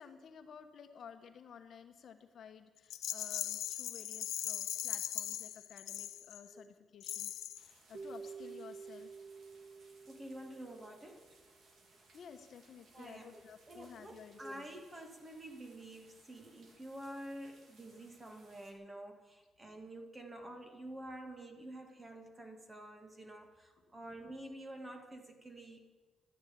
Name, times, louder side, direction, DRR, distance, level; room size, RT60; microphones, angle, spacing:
voice 1, 0.0-9.1 12.1-14.7 23.9-24.0, left 7 dB, 55° left, 7 dB, 1.2 m, -54 dB
Rattle, 2.9-6.5 7.0-7.7, left 12 dB, 90° left, 0.6 m, -39 dB
sound 1, 7.5-18.7, right 2 dB, 55° right, 3.1 m, -66 dB
Keyboard (musical), 7.9-11.2, right 5 dB, 75° right, 1.3 m, -50 dB
voice 2, 10.0-11.3 12.9-13.4 13.7-25.8, right 1 dB, 20° right, 4 dB, 2.0 m, -49 dB
12.5 x 10.5 x 8.9 m, 1.2 s
cardioid pair, 140°, 0 cm